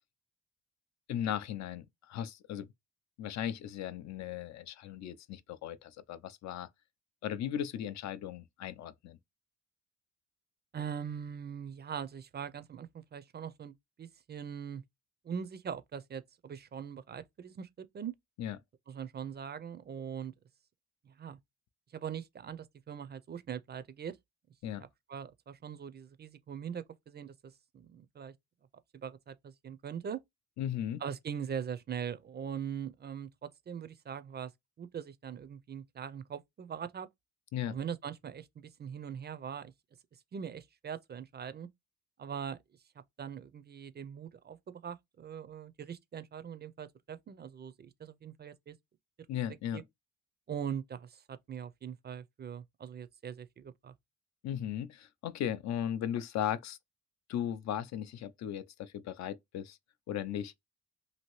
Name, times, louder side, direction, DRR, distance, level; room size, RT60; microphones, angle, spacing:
voice 1, 1.1-2.7 3.2-6.7 7.2-9.2 18.4-18.6 24.6-24.8 30.6-31.0 37.5-37.8 49.3-49.8 54.4-56.8 57.3-59.8 60.1-60.6, left 10 dB, 65° left, 0.5 m, -37 dB
voice 2, 10.7-14.8 15.2-18.1 18.9-20.3 21.1-21.4 21.9-24.2 25.1-28.3 28.9-30.2 31.0-34.5 34.8-37.1 37.7-39.7 40.3-41.7 42.2-42.6 43.2-48.8 49.7-49.8 50.5-53.9, right 8 dB, 35° right, 0.4 m, -41 dB
2.8 x 2.6 x 3.0 m
cardioid pair, 90°, 30 cm